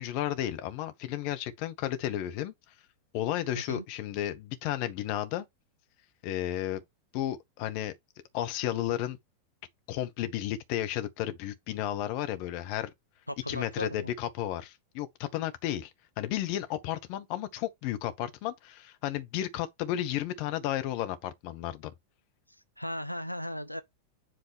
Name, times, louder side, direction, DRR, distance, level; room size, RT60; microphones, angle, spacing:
voice 1, 0.0-2.5 3.1-5.4 6.2-6.8 7.1-8.0 8.3-9.2 9.9-12.9 13.5-15.9 16.2-21.9, left 12 dB, 45° left, 1.1 m, -33 dB
voice 2, 13.3-14.1 22.5-23.8, left 1 dB, 90° left, 0.3 m, -37 dB
7.6 x 3.8 x 3.5 m
figure-of-eight pair, 90°, 0 cm